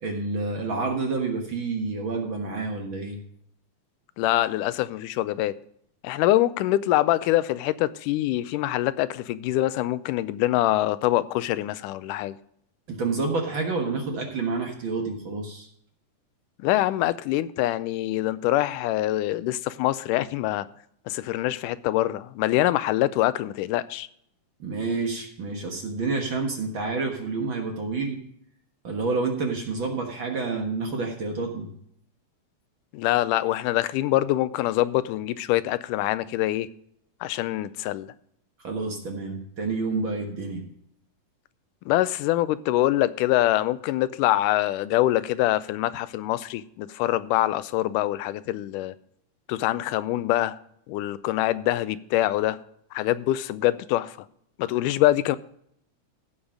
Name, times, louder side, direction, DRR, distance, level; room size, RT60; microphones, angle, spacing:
voice 1, 0.0-3.2 12.9-15.7 24.6-28.2 28.8-31.7 38.6-40.6, right 3 dB, 50° right, 1.7 m, -29 dB
voice 2, 4.2-5.6 6.0-12.4 16.6-20.7 21.1-24.1 32.9-36.7 37.2-38.1 41.9-49.0 49.5-50.6 50.9-52.6 52.9-54.2 54.6-55.4, left 15 dB, 90° left, 2.1 m, -24 dB
16.0 x 5.6 x 4.9 m
omnidirectional pair, 3.6 m